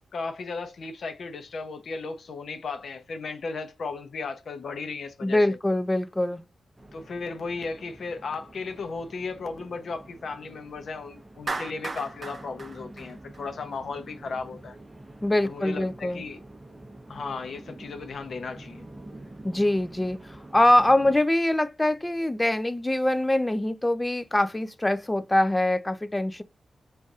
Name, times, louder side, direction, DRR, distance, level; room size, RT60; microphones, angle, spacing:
voice 1, 0.1-5.6 6.9-14.8 15.4-16.4 17.1-18.9, left 4 dB, 75° left, 0.7 m, -35 dB
voice 2, 5.2-6.4 15.2-16.2 19.4-26.4, left 1 dB, 15° left, 0.4 m, -24 dB
sound 1, 6.8-21.2, right 1 dB, 20° right, 0.8 m, -47 dB
Clapping, 11.5-13.8, right 3 dB, 50° right, 0.5 m, -36 dB
3.9 x 2.6 x 2.4 m
cardioid pair, 70°, 0 cm